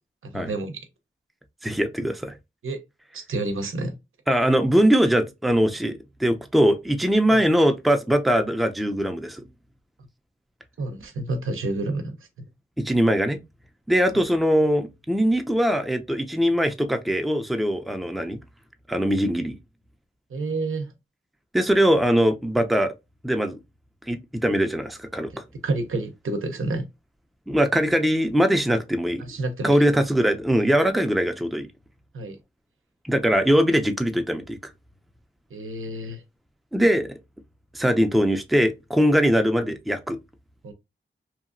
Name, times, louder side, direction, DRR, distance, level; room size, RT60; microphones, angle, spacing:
voice 1, 0.2-0.8 2.6-2.8 3.1-4.0 7.3-7.4 10.8-12.2 14.1-14.2 20.3-20.9 25.6-26.9 29.2-29.8 32.1-32.4 35.5-36.2 40.6-40.7, right 2 dB, 85° right, 0.6 m, -29 dB
voice 2, 1.6-2.3 4.3-9.4 12.8-13.4 13.9-18.4 18.9-19.6 21.5-22.9 23.2-23.6 24.1-25.4 27.5-29.2 29.6-31.7 33.0-34.6 36.7-37.2 37.7-40.2, equal, ahead, 0.5 m, -21 dB
2.8 x 2.5 x 2.4 m
wide cardioid pair, 60°, 21 cm